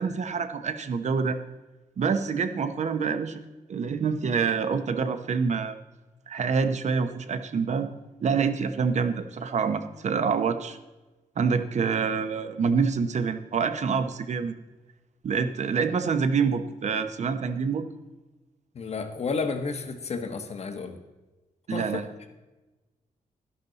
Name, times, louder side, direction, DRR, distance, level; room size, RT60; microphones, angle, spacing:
voice 1, 0.0-1.4 2.0-3.4 3.7-5.8 6.3-7.9 8.2-10.8 11.4-14.5 15.2-17.9 21.7-22.3, right 5 dB, 55° right, 9 dB, 0.8 m, -26 dB
voice 2, 18.7-21.0 21.7-22.0, left 4 dB, 50° left, 6 dB, 1.3 m, -31 dB
12.0 x 11.0 x 4.0 m, 1.1 s
wide cardioid pair, 140°, 14 cm